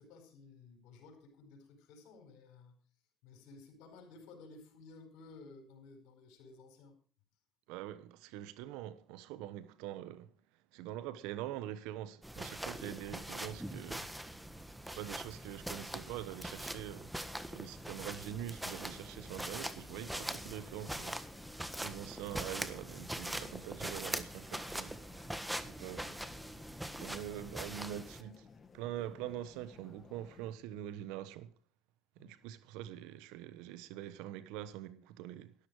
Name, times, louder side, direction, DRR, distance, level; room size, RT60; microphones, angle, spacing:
voice 1, 0.0-2.8 3.2-6.9 32.2-32.3, left 3 dB, 80° left, 4.8 m, -55 dB
voice 2, 7.7-14.1 14.8-17.1 17.5-21.2 21.8-25.0 25.6-26.2 27.0-28.5 28.7-31.5 32.2-35.5, right 12 dB, 85° right, 1.1 m, -44 dB
sound 1, 12.2-28.2, right 1 dB, 5° right, 1.5 m, -42 dB
sound 2, 16.5-30.6, left 5 dB, 35° left, 1.7 m, -59 dB
13.5 x 12.0 x 4.8 m
supercardioid pair, 80°, 0 cm